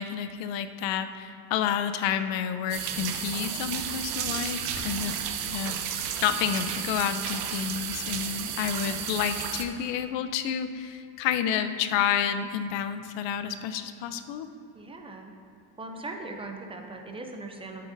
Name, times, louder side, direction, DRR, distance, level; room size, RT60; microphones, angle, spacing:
voice 1, 0.0-5.1 5.5-14.5, left 8 dB, 65° left, 10 dB, 0.6 m, -30 dB
sound 1, 2.7-9.6, right 8 dB, 60° right, 0.8 m, -33 dB
voice 2, 14.7-15.3 15.8-17.8, right 2 dB, 15° right, 3 dB, 0.3 m, -40 dB
11.0 x 8.4 x 2.6 m, 2.6 s
cardioid pair, 150°, 47 cm